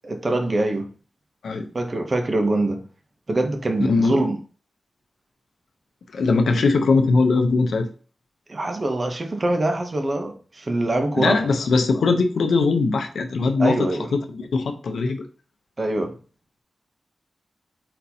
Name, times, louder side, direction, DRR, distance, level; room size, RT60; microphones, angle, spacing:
voice 1, 0.0-0.9 1.7-2.8 3.3-4.4 8.5-11.5 13.6-14.1 15.8-16.1, right 2 dB, 35° right, 0.8 m, -24 dB
voice 2, 3.8-4.2 6.1-7.9 11.1-15.2, left 3 dB, 90° left, 0.6 m, -20 dB
4.3 x 4.1 x 2.8 m
wide cardioid pair, 105°, 0 cm